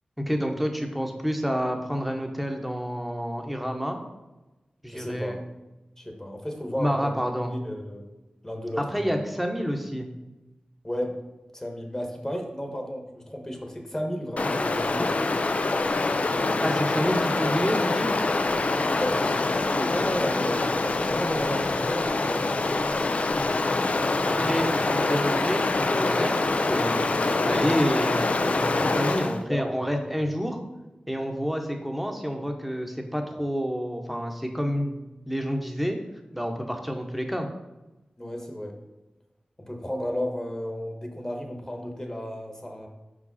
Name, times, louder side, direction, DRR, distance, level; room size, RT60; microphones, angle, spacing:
voice 1, 0.2-4.0 4.8-5.4 6.8-7.5 8.8-10.1 16.6-18.1 24.3-26.4 26.7-30.6 31.1-36.0 36.3-37.5, equal, ahead, 3 dB, 0.9 m, -29 dB
voice 2, 4.9-5.4 6.0-7.1 7.5-8.0 8.4-9.2 10.8-11.3 11.5-15.1 19.0-22.5 29.5-30.1 38.2-38.8 39.6-42.9, equal, 20° left, 2 dB, 1.2 m, -33 dB
Stream, 14.4-29.4, left 3 dB, 55° left, 0.4 m, -25 dB
5.2 x 4.9 x 4.1 m, 1.1 s
wide cardioid pair, 55°, 3 cm